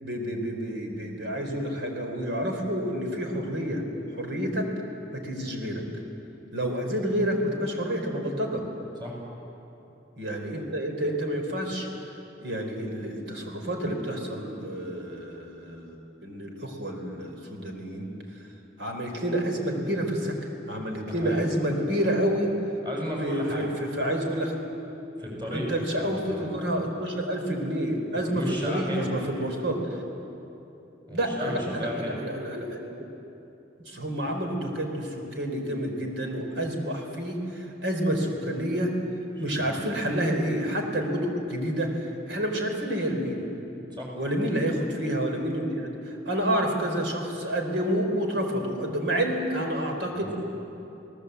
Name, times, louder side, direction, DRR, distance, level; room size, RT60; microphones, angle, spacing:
voice 1, 0.0-3.8 4.1-4.7 5.1-5.8 6.5-8.6 10.2-11.9 12.4-18.1 18.8-20.3 20.7-22.5 23.2-24.5 25.5-29.8 31.1-33.0 33.9-38.9 39.4-43.5 44.1-45.9 46.2-50.3, equal, 75° right, 3 dB, 4.3 m, -29 dB
voice 2, 21.1-21.4 22.8-23.6 25.2-25.6 26.0-26.5 28.2-29.1 31.1-32.2 39.4-39.7 43.9-44.1 50.1-50.3, equal, 25° right, -2 dB, 7.1 m, -34 dB
28.0 x 18.5 x 8.2 m, 2.9 s
head